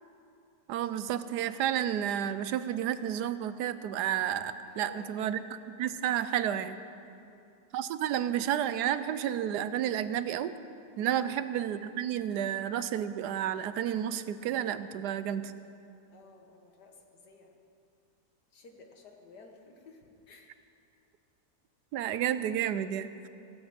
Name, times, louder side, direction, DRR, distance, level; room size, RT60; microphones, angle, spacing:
voice 1, 0.7-5.4 5.8-6.8 7.7-10.5 11.0-15.5 21.9-23.3, right 10 dB, 80° right, 13 dB, 1.2 m, -31 dB
voice 2, 4.7-5.4 7.1-7.6 11.2-11.5 16.1-17.6 18.5-20.5, left 3 dB, 75° left, 3 dB, 2.0 m, -54 dB
17.5 x 8.0 x 8.7 m, 2.5 s
omnidirectional pair, 1.8 m